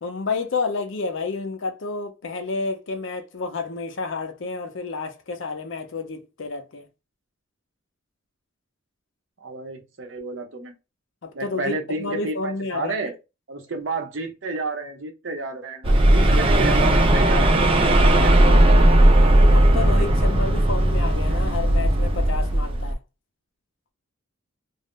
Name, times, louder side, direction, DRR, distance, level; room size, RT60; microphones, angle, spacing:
voice 1, 0.0-6.9 11.2-13.0 19.2-23.0, left 4 dB, 65° left, 0.6 m, -30 dB
voice 2, 9.4-10.7 11.3-13.1 13.5-17.7 18.0-18.7, right 3 dB, 60° right, 0.7 m, -31 dB
sound 1, 15.8-22.9, right 1 dB, 25° right, 0.4 m, -17 dB
2.5 x 2.0 x 3.5 m
head